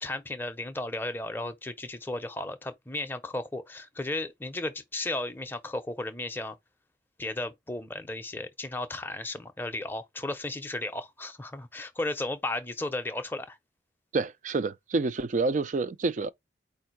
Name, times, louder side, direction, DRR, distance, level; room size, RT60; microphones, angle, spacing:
voice 1, 0.0-6.6 7.2-13.6, left 2 dB, 10° left, 0.6 m, -34 dB
voice 2, 14.1-16.3, right 3 dB, 45° right, 0.4 m, -28 dB
4.5 x 2.6 x 4.5 m
head